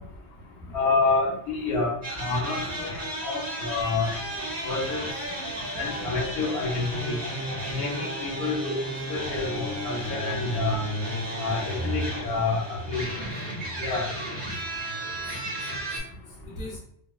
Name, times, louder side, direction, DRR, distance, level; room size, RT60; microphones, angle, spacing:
voice 1, 0.7-1.9 2.2-4.1 4.6-5.1 5.7-7.1 7.7-8.8 9.1-10.8 11.4-13.3 13.8-14.1, left 3 dB, 65° left, -1 dB, 0.8 m, -28 dB
sound 1, 2.0-16.0, right 1 dB, 65° right, 1.2 m, -33 dB
voice 2, 14.5-15.3 15.6-16.8, left 2 dB, 5° right, -6 dB, 0.5 m, -45 dB
2.8 x 2.0 x 2.3 m, 0.74 s
omnidirectional pair, 1.2 m